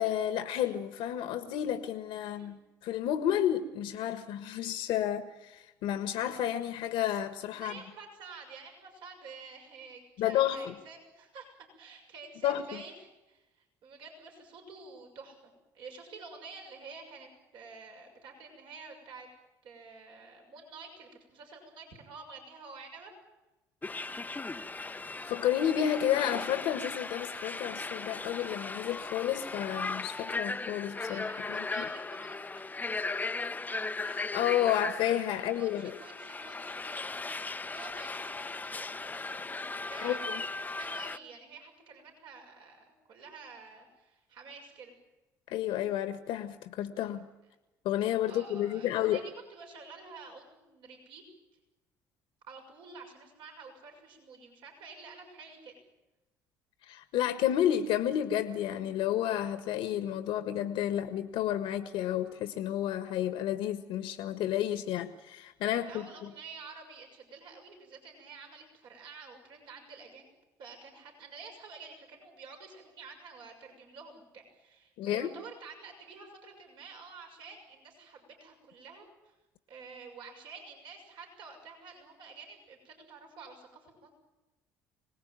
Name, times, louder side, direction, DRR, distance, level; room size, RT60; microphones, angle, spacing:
voice 1, 0.0-7.7 10.2-10.7 12.4-12.6 25.2-31.9 34.0-35.9 40.0-40.4 45.5-47.3 47.8-49.2 56.8-66.3 75.0-75.3, left 11 dB, 70° left, 9 dB, 1.6 m, -31 dB
voice 2, 7.6-11.5 11.8-19.3 19.6-23.1 31.0-32.7 35.3-37.0 37.7-39.2 39.9-40.2 40.6-44.9 48.2-49.2 49.5-51.2 52.5-55.7 65.9-70.3 70.6-79.3 79.7-84.1, right 4 dB, 65° right, 2 dB, 6.6 m, -49 dB
sound 1, 23.8-41.2, left 3 dB, 20° left, 0.9 m, -37 dB
26.0 x 19.5 x 9.1 m, 1.0 s
hypercardioid pair, 65°, 9 cm